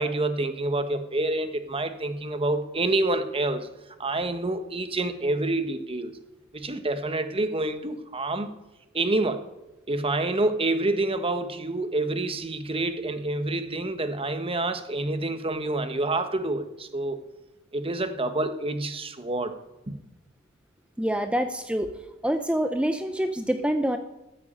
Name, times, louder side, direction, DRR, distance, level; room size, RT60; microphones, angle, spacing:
voice 1, 0.0-3.7 4.0-6.1 6.5-8.5 8.9-9.4 9.9-17.2 17.7-19.6 19.9-20.0, right 2 dB, 25° right, 9 dB, 1.2 m, -27 dB
voice 2, 21.0-21.9 22.2-24.0, equal, 5° right, 8 dB, 0.7 m, -26 dB
14.0 x 9.6 x 8.7 m, 0.96 s
head